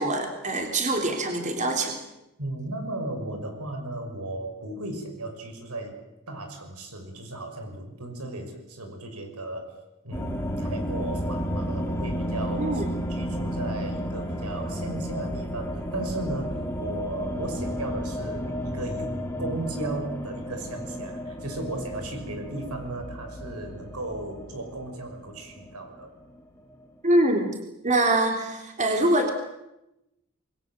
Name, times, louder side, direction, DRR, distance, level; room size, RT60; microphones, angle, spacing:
voice 1, 0.0-2.0 12.6-12.9 27.0-27.5 27.8-29.3, right 1 dB, 35° right, 4 dB, 3.5 m, -24 dB
voice 2, 2.4-5.9 6.3-9.7 10.0-12.8 13.1-26.1, right 2 dB, 85° right, 5 dB, 6.0 m, -35 dB
sound 1, 10.1-27.0, equal, 10° left, 2.6 m, -32 dB
27.5 x 21.5 x 7.8 m, 0.90 s
head